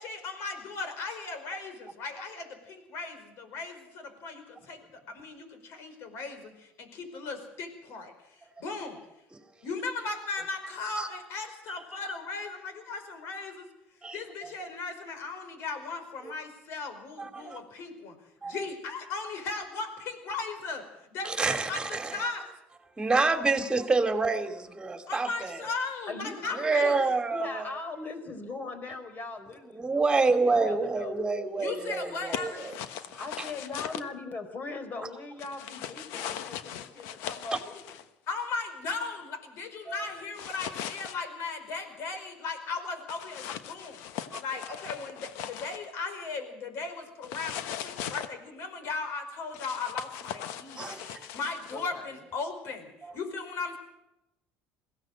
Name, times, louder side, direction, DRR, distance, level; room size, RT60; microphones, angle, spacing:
voice 1, 0.0-4.8 5.1-9.0 9.6-13.7 14.1-18.2 18.4-20.8 21.1-22.4 25.1-26.9 31.6-32.6 38.3-44.0 44.4-53.8, left 4 dB, 65° left, 8 dB, 5.0 m, -37 dB
voice 2, 14.0-14.5 16.2-16.3 17.2-17.6 18.4-18.6 21.2-22.2 23.0-25.6 26.5-27.7 29.7-32.8 39.9-40.1 44.3-44.4 50.8-51.3 53.0-53.1, right 3 dB, 15° right, 7 dB, 2.6 m, -28 dB
voice 3, 26.1-27.0 27.3-31.1 33.2-37.8 51.7-52.1, left 3 dB, 40° left, 9 dB, 4.3 m, -40 dB
sound 1, 32.3-34.0 35.4-38.0 40.3-41.1 43.1-45.9 47.2-48.3 49.5-51.8, left 10 dB, 80° left, 1.2 m, -39 dB
22.0 x 16.5 x 7.8 m, 0.90 s
supercardioid pair, 100°, 5 cm